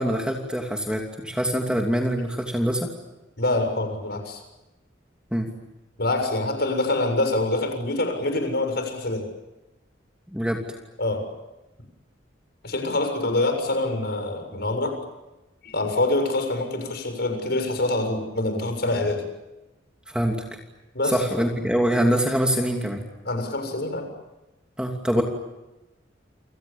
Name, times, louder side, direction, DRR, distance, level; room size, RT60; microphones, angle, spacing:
voice 1, 0.0-2.9 5.3-5.5 10.3-10.6 20.1-20.4 21.0-23.0 24.8-25.2, equal, 5° right, 1 dB, 2.8 m, -24 dB
voice 2, 3.4-4.4 6.0-9.3 11.0-11.3 12.6-15.0 15.6-19.2 20.9-21.2 23.3-24.1, left 2 dB, 60° left, 6 dB, 7.0 m, -25 dB
29.5 x 27.0 x 7.2 m, 1.0 s
head